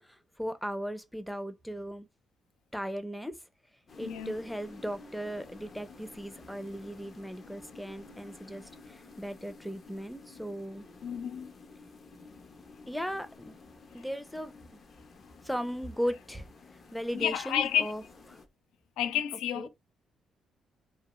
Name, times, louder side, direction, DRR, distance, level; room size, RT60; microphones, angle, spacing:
voice 1, 0.0-2.1 2.7-3.4 4.0-10.8 12.9-13.6 13.9-14.5 15.4-18.0 19.5-19.7, equal, ahead, 0.5 m, -37 dB
sound 1, 3.9-18.5, left 3 dB, 45° left, 0.6 m, -52 dB
voice 2, 4.0-4.3 11.0-11.5 17.1-17.9 19.0-19.7, left 10 dB, 90° left, 0.4 m, -30 dB
2.3 x 2.1 x 2.9 m
cardioid pair, 90°, 0 cm